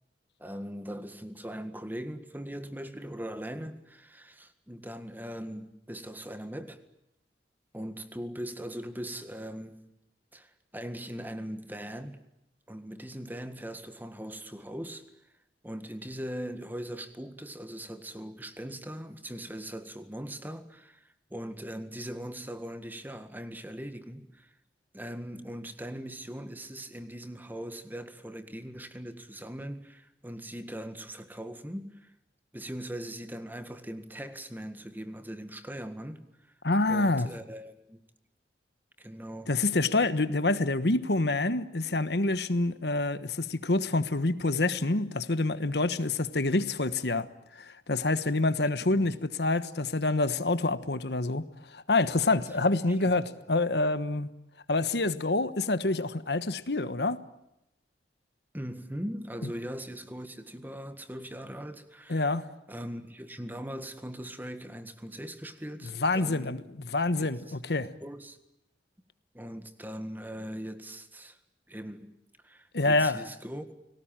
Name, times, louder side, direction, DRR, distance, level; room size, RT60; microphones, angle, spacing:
voice 1, 0.4-6.8 7.7-9.8 10.3-12.2 12.7-15.0 15.6-24.5 24.9-32.1 32.5-36.2 36.9-38.0 39.0-39.5 48.9-49.1 53.0-53.1 58.5-62.4 62.7-66.6 67.2-67.6 68.0-68.4 69.3-71.4 71.7-72.1 72.4-73.7, equal, 10° right, 1.8 m, -40 dB
voice 2, 36.6-37.3 39.5-47.3 47.6-51.4 51.7-54.3 54.7-57.2 62.1-62.5 66.0-67.9 72.7-73.2, left 2 dB, 70° left, 1.3 m, -27 dB
29.5 x 19.5 x 9.0 m
head